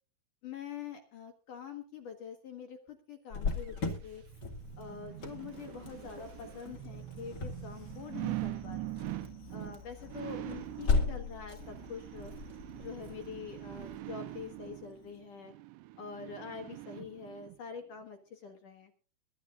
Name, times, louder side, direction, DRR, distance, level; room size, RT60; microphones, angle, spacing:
voice 1, 0.4-4.2 4.8-8.9 9.5-12.3 12.8-15.5 16.0-18.9, left 6 dB, 70° left, 4 dB, 2.0 m, -45 dB
Cricket, 3.3-14.8, left 4 dB, 35° left, 1.7 m, -38 dB
sound 1, 3.7-17.6 18.0-18.1, right 17 dB, 85° right, 2.5 m, -43 dB
22.5 x 12.0 x 2.5 m, 0.39 s
omnidirectional pair, 5.9 m